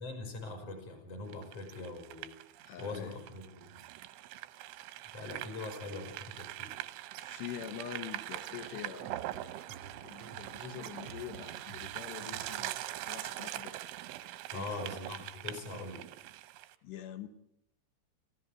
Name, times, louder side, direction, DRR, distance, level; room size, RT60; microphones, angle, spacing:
voice 1, 0.0-2.3 2.8-3.8 5.1-6.8 14.5-16.0, left 3 dB, 40° left, 4 dB, 6.0 m, -42 dB
sound 1, 1.3-16.8, right 15 dB, 90° right, 3.5 m, -43 dB
voice 2, 2.6-3.1 7.2-9.1 10.0-13.8 14.5-14.8 16.8-17.3, left 10 dB, 70° left, 11 dB, 3.1 m, -45 dB
sound 2, 8.9-12.9, right 6 dB, 50° right, 1.8 m, -52 dB
26.5 x 15.5 x 8.2 m, 0.78 s
omnidirectional pair, 5.4 m